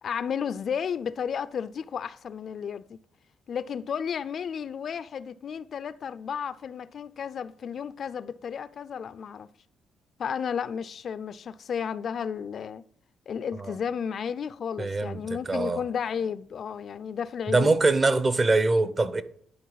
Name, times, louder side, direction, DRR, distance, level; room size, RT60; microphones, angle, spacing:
voice 1, 0.0-3.0 3.5-9.5 10.2-12.8 13.3-17.7, left 7 dB, 55° left, 0.4 m, -33 dB
voice 2, 14.8-15.8 17.5-19.2, right 3 dB, 35° right, 0.7 m, -23 dB
11.0 x 4.4 x 4.0 m
cardioid pair, 90°, 0 cm